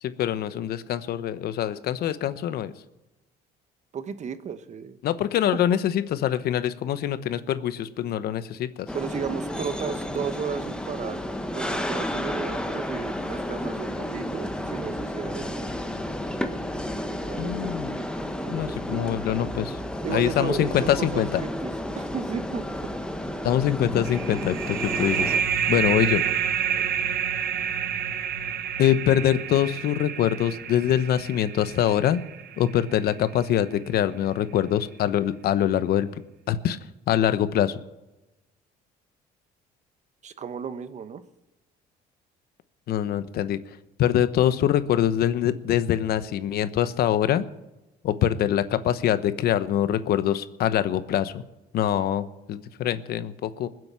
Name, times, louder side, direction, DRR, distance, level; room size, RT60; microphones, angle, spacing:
voice 1, 0.0-2.7 5.0-8.9 17.4-18.0 18.5-19.8 20.1-21.4 23.4-25.3 25.7-26.2 28.8-32.2 32.6-36.2 36.5-36.8 37.1-37.8 42.9-47.4 48.0-51.4 51.7-53.7, left 10 dB, 65° left, 13 dB, 1.0 m, -24 dB
voice 2, 3.9-5.0 8.9-11.2 11.5-15.7 17.2-17.8 18.4-19.0 20.0-21.7 22.0-22.9 26.7-26.9 40.2-41.2, right 7 dB, 45° right, 12 dB, 1.1 m, -34 dB
sound 1, 8.9-25.4, left 1 dB, 5° left, 1.3 m, -32 dB
sound 2, 24.1-33.3, right 8 dB, 65° right, 1.2 m, -29 dB
20.5 x 7.8 x 7.4 m, 1.0 s
cardioid pair, 110°, 17 cm